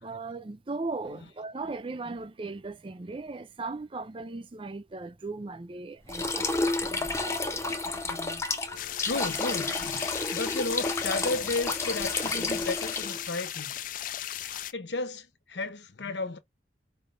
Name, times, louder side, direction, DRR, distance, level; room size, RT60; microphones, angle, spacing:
voice 1, 0.0-7.5, right 3 dB, 30° right, 0.5 m, -38 dB
sound 1, 6.1-13.3, left 3 dB, 15° left, 0.8 m, -31 dB
voice 2, 7.0-13.7 14.7-16.4, left 3 dB, 75° left, 0.9 m, -34 dB
sound 2, 8.8-14.7, left 11 dB, 50° left, 0.4 m, -36 dB
4.9 x 2.7 x 3.3 m
head